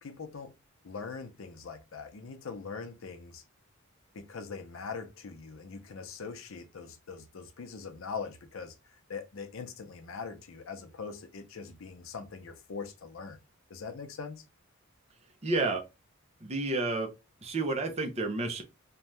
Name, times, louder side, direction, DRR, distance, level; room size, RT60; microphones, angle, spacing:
voice 1, 0.0-0.5 0.8-3.4 4.1-13.4 13.7-14.5, left 5 dB, 75° left, 0.5 m, -42 dB
voice 2, 15.4-15.8 16.4-17.1 17.4-18.6, right 2 dB, 30° right, 0.6 m, -30 dB
2.6 x 2.2 x 3.1 m
head